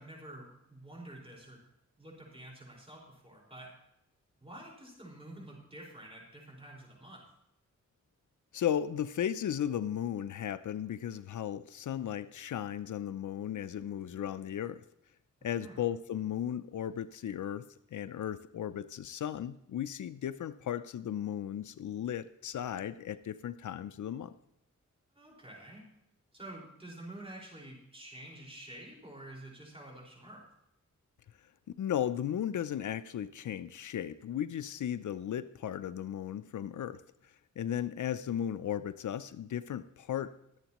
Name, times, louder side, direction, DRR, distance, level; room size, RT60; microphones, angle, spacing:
voice 1, 0.0-1.6 2.0-3.7 4.4-7.2 15.6-15.8 25.1-25.8 26.3-30.4, right 1 dB, 20° right, -2 dB, 4.9 m, -49 dB
voice 2, 8.5-14.8 15.4-17.6 17.9-24.3 31.8-37.0 37.6-40.3, left 10 dB, 75° left, 13 dB, 0.5 m, -35 dB
23.0 x 8.0 x 3.0 m, 0.80 s
wide cardioid pair, 85°, 30 cm